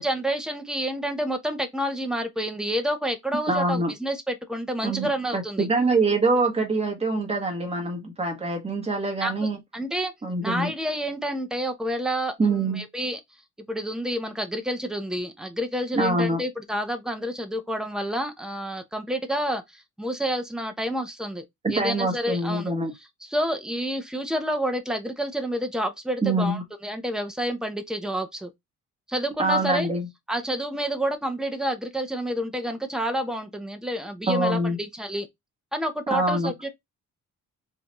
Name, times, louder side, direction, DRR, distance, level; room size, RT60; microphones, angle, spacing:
voice 1, 0.0-5.7 9.2-9.3 9.7-10.1 10.4-13.2 13.7-21.4 21.7-22.7 23.2-28.5 29.1-29.9 30.3-35.3 35.7-36.7, equal, ahead, 0.7 m, -29 dB
voice 2, 3.5-3.9 4.8-9.6 10.2-10.7 12.4-12.8 15.9-16.4 21.6-22.9 26.2-26.6 29.4-30.1 34.3-34.8 36.1-36.5, right 2 dB, 20° right, 1.4 m, -24 dB
4.1 x 2.7 x 3.0 m
cardioid pair, 145°, 31 cm